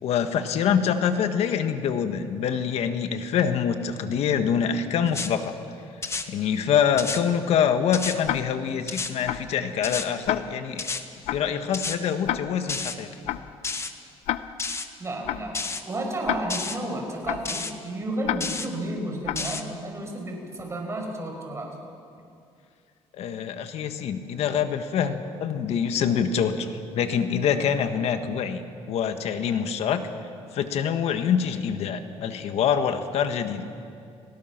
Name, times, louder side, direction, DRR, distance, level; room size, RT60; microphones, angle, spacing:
voice 1, 0.0-5.5 6.3-10.9 11.3-13.1 23.1-28.6 28.9-30.1 30.5-33.7, left 7 dB, 70° left, 8 dB, 1.6 m, -25 dB
sound 1, 5.1-5.3 6.0-6.3 7.0-7.2 7.9-8.2 8.9-9.1 9.8-10.1 10.8-11.0 11.7-12.0 12.7-13.0 13.6-13.9 14.6-14.9 15.5-15.8 16.5-16.8 17.5-17.7 18.4-18.7 19.4-19.6, left 4 dB, 25° left, 1.3 m, -30 dB
Tick-tock, 8.2-8.7 9.3-9.6 10.3-10.7 11.3-11.6 12.3-12.7 13.3-13.6 14.3-14.7 15.3-15.6 16.3-16.7 17.3-17.6 18.2-18.7 19.2-19.6, left 13 dB, 85° left, 0.7 m, -31 dB
voice 2, 15.0-21.7, right 1 dB, 25° right, 1 dB, 5.1 m, -32 dB
30.0 x 18.0 x 6.0 m, 2.4 s
cardioid pair, 115°, 11 cm